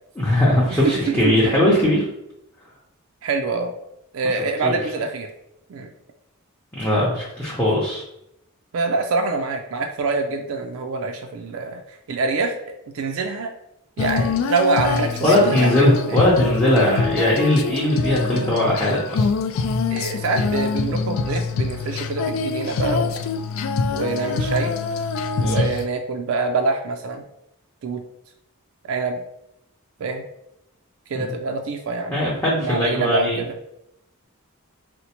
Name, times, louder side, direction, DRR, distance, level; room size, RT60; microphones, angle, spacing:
voice 1, 0.2-2.1 4.6-4.8 6.8-8.0 15.2-19.3 25.4-25.7 31.1-31.3 32.1-33.4, left 1 dB, 10° left, -6 dB, 0.6 m, -19 dB
voice 2, 0.7-1.6 3.2-3.7 4.1-5.3 5.7-5.9 8.7-11.8 12.1-12.6 12.9-13.5 14.0-16.2 19.9-23.1 23.9-24.7 25.4-27.2 27.8-28.0 28.8-29.2 30.0-30.2 31.1-32.2 32.6-33.6, right 3 dB, 70° right, 4 dB, 0.4 m, -25 dB
Female singing, 14.0-25.9, left 4 dB, 70° left, 0.3 m, -24 dB
4.2 x 2.1 x 2.8 m, 0.81 s
head